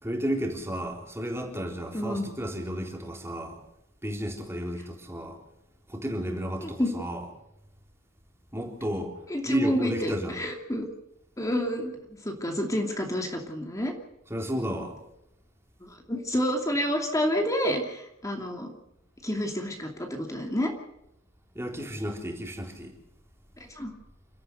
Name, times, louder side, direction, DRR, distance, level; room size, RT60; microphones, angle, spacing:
voice 1, 0.0-3.6 4.0-5.4 5.9-7.3 8.5-9.2 9.5-10.4 14.3-15.0 21.5-23.0, equal, 15° right, 3.9 m, -32 dB
voice 2, 1.9-2.3 6.6-7.0 9.3-10.9 11.4-11.9 12.2-13.9 15.8-18.7 19.2-20.7 23.6-23.9, equal, 15° left, 2.7 m, -29 dB
29.0 x 13.5 x 6.7 m
head